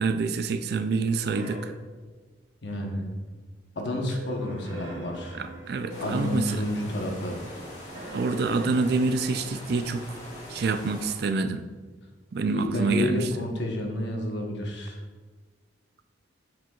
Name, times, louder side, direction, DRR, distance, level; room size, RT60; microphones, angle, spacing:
voice 1, 0.0-1.7 5.4-6.6 8.1-10.0 10.5-11.6 12.3-13.3, right 4 dB, 55° right, 9 dB, 0.4 m, -26 dB
sound 1, 0.9-1.8 4.0-6.5 7.9-9.3, right 1 dB, 80° right, 1.4 m, -41 dB
voice 2, 2.6-3.0 3.7-5.4 6.0-7.4 12.5-15.0, left 1 dB, 65° left, 1 dB, 1.0 m, -30 dB
sound 2, 5.9-11.2, left 1 dB, 35° left, 1.6 m, -42 dB
7.5 x 5.9 x 2.3 m, 1.4 s
head